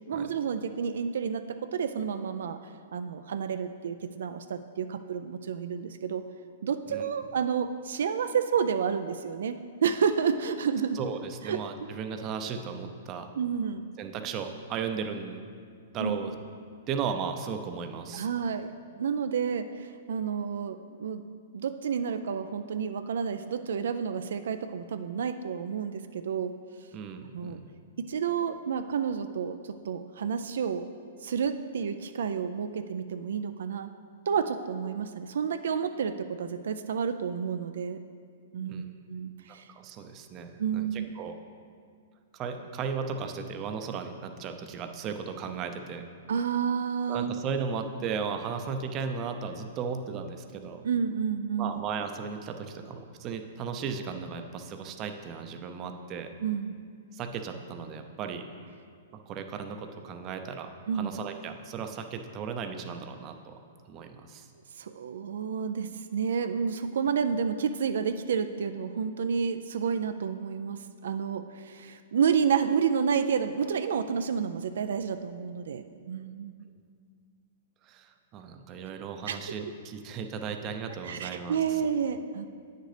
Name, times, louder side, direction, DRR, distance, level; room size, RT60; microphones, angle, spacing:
voice 1, 0.1-2.6 2.9-6.2 6.6-11.0 11.4-11.6 13.3-13.8 16.0-16.2 18.1-21.2 21.5-26.5 27.3-27.6 28.0-30.9 31.2-33.9 34.3-38.0 38.5-39.7 40.6-41.1 46.3-47.3 50.8-51.8 56.4-56.7 60.9-61.1 64.8-76.7 79.3-79.7 81.0-82.5, right 7 dB, 80° right, 8 dB, 0.3 m, -30 dB
voice 2, 10.9-13.3 14.0-15.4 15.9-16.3 16.9-18.3 26.9-27.7 38.6-38.9 39.5-41.3 42.3-46.0 47.1-50.8 51.6-56.3 57.1-58.5 59.3-63.5 63.9-64.5 77.8-81.8, right 6 dB, 30° right, 6 dB, 0.5 m, -36 dB
9.1 x 6.5 x 3.3 m, 2.2 s
hypercardioid pair, 145°, 0 cm